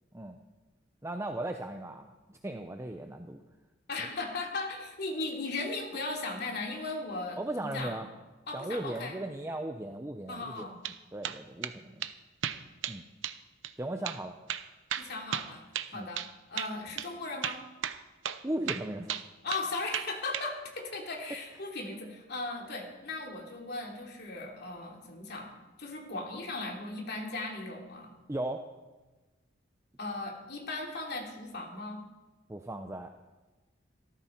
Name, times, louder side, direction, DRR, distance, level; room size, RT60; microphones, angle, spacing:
voice 1, 1.0-3.4 7.4-8.1 8.5-10.7 11.1-12.1 12.9-13.0 13.8-14.3 15.9-16.1 18.4-19.1 28.3-28.6 32.5-33.1, right 1 dB, 15° right, 5 dB, 0.7 m, -37 dB
voice 2, 3.9-8.0 8.5-9.2 10.3-10.7 14.9-15.6 15.9-16.2 16.5-17.6 19.4-25.5 25.8-28.1 30.0-32.0, left 3 dB, 60° left, 0 dB, 3.1 m, -37 dB
sound 1, 10.6-11.0 11.2-11.8 12.0-12.1 12.4-13.0 13.2-13.4 13.6-13.7 14.1-14.2 14.5-16.3 16.6-16.7 17.0-17.1 17.4-18.0 18.2-18.4 18.7-19.7 19.9-20.5, right 9 dB, 80° right, 0.8 m, -35 dB
18.5 x 14.5 x 4.6 m, 1.2 s
head